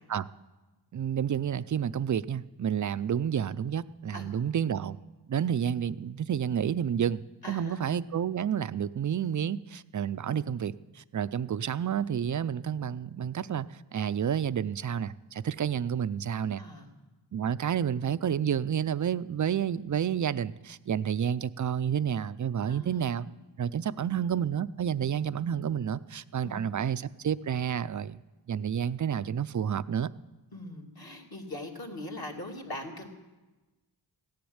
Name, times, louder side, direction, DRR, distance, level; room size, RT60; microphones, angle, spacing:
voice 1, 0.9-5.0 5.3-7.2 7.5-13.7 13.9-16.6 17.3-23.3 23.6-28.2 28.5-30.1, right 8 dB, 40° right, 15 dB, 0.4 m, -30 dB
voice 2, 7.4-7.9 16.6-16.9 22.7-23.3 23.8-24.1 25.1-25.3 26.4-26.6 30.5-33.1, left 1 dB, 50° left, 0 dB, 2.6 m, -41 dB
15.5 x 10.5 x 7.9 m, 1.2 s
wide cardioid pair, 75°, 47 cm